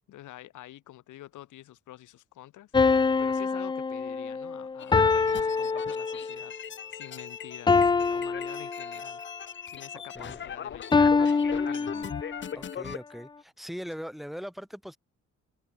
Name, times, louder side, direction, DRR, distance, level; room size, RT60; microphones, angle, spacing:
voice 1, 0.1-6.5 6.9-9.2 9.7-11.2 11.5-12.0, left 14 dB, 80° left, 2.2 m, -47 dB
sound 1, 2.7-6.5 7.7-9.2 10.9-12.5, left 4 dB, 15° left, 0.4 m, -25 dB
sound 2, 4.8-13.0, left 8 dB, 40° left, 0.8 m, -40 dB
voice 2, 12.5-15.0, equal, ahead, 7.1 m, -40 dB
cardioid pair, 90°, 30 cm